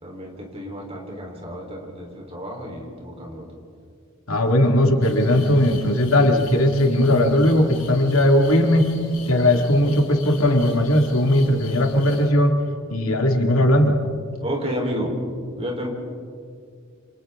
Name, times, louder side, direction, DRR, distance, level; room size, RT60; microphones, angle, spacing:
voice 1, 0.0-3.5 14.4-15.1 15.6-15.9, equal, 30° right, 1 dB, 3.9 m, -31 dB
voice 2, 4.3-8.9 9.3-12.5 12.9-14.0, left 1 dB, 85° left, 3 dB, 2.2 m, -18 dB
sound 1, 5.0-12.3, left 3 dB, 60° left, 4.6 m, -41 dB
28.0 x 27.5 x 3.7 m, 2.3 s
head